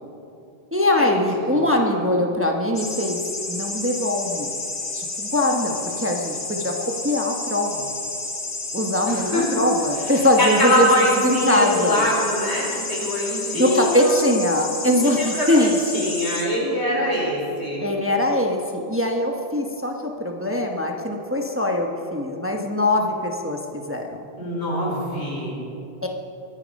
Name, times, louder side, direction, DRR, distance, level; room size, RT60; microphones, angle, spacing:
voice 1, 0.7-3.2 3.5-4.5 4.9-6.7 7.0-7.9 8.7-10.9 11.2-12.0 13.2-16.1 17.8-19.9 20.2-24.2 26.0-26.1, left 1 dB, 10° right, 1 dB, 1.1 m, -22 dB
sound 1, 2.8-16.4, left 3 dB, 65° left, 2.1 m, -31 dB
voice 2, 9.1-9.4 10.1-14.2 15.2-17.9 24.4-25.6, left 1 dB, 85° left, -4 dB, 4.6 m, -24 dB
23.0 x 9.9 x 5.3 m, 2.7 s
omnidirectional pair, 1.1 m